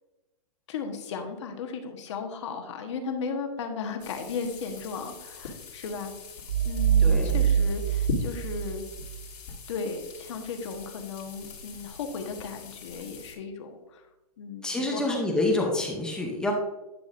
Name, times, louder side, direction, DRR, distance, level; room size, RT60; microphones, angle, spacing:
voice 1, 0.7-6.1 6.6-8.8 9.7-14.0 14.4-15.4, left 5 dB, 45° left, 4 dB, 1.2 m, -36 dB
sound 1, 4.0-13.3, left 4 dB, 80° left, 2.8 m, -41 dB
sound 2, 6.5-9.3, right 8 dB, 80° right, 0.5 m, -24 dB
voice 2, 7.0-7.4 14.6-16.5, left 2 dB, 5° left, 0 dB, 0.6 m, -27 dB
10.5 x 6.0 x 2.5 m, 1.0 s
hypercardioid pair, 170°, 20 cm